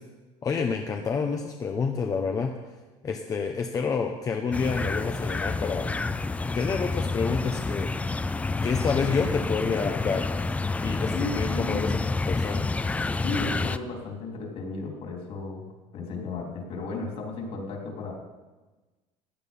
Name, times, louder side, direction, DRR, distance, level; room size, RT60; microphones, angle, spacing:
voice 1, 0.4-2.5 3.0-6.0 6.5-7.9 8.6-10.3 10.8-12.0 12.3-12.7, left 5 dB, 30° left, 3 dB, 0.9 m, -28 dB
sound 1, 4.5-13.8, left 3 dB, 10° left, 0.4 m, -28 dB
voice 2, 11.1-11.9 13.2-15.7 15.9-18.1, left 3 dB, 55° left, 0 dB, 3.8 m, -34 dB
15.5 x 9.9 x 5.5 m, 1.2 s
cardioid pair, 135°, 12 cm